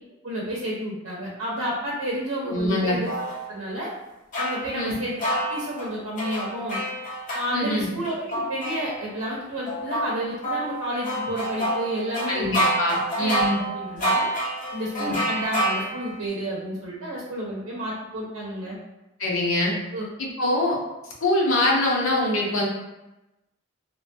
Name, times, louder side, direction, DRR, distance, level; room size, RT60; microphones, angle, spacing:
voice 1, 0.2-3.1 3.5-3.9 4.4-6.8 7.3-12.5 13.2-13.3 13.7-14.3 14.7-18.8 19.9-20.1, equal, 90° right, -4 dB, 0.6 m, -30 dB
voice 2, 2.5-3.0 4.7-4.9 7.5-7.9 12.3-13.6 15.0-15.2 19.2-19.7 20.2-20.8 21.2-22.7, left 1 dB, 85° left, -2 dB, 0.7 m, -24 dB
sound 1, 3.0-3.4 4.3-7.5 8.1-9.3 9.7-16.2, right 1 dB, 40° left, 0.6 m, -28 dB
3.0 x 2.2 x 2.5 m, 0.97 s
head